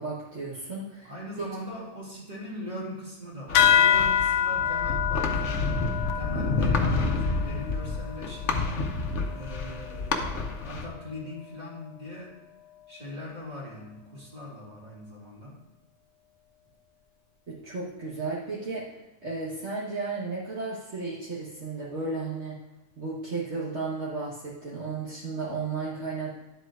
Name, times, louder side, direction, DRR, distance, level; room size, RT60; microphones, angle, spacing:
voice 1, 0.0-1.1 17.5-18.8 19.2-22.5 23.0-26.3, right 3 dB, 55° right, -7 dB, 1.7 m, -34 dB
voice 2, 1.0-5.7 6.1-8.9 9.3-10.4 10.6-12.4 12.9-15.6, left 1 dB, 30° right, -5 dB, 2.6 m, -40 dB
sound 1, 3.5-8.5, left 9 dB, 90° left, 1.0 m, -26 dB
sound 2, 3.5-10.9, left 3 dB, 65° left, 1.1 m, -29 dB
10.0 x 7.7 x 2.5 m, 1.1 s
omnidirectional pair, 1.4 m